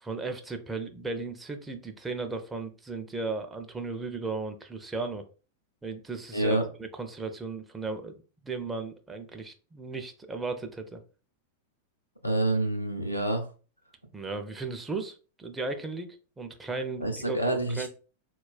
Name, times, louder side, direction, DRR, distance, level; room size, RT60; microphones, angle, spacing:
voice 1, 0.0-5.2 5.8-11.0 14.1-17.4 17.8-17.9, right 3 dB, 10° right, 6 dB, 0.4 m, -36 dB
voice 2, 6.3-6.6 12.2-13.5 17.0-17.9, right 1 dB, 90° left, 5 dB, 0.6 m, -27 dB
4.1 x 2.2 x 2.4 m, 0.36 s
figure-of-eight pair, 90°, 0 cm